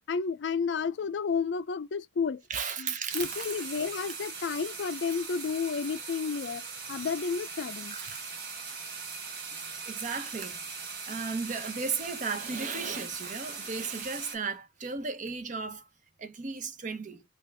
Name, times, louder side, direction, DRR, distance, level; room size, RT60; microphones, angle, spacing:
voice 1, 0.1-2.4 2.8-6.6 6.9-8.0, left 5 dB, 70° left, 0.4 m, -31 dB
voice 2, 2.5-3.5 7.9-8.2 9.8-10.6 11.0-15.8 16.2-17.2, right 5 dB, 45° right, 0.7 m, -35 dB
sound 1, 3.1-14.4, right 4 dB, 65° right, 1.3 m, -40 dB
3.4 x 2.5 x 3.2 m
head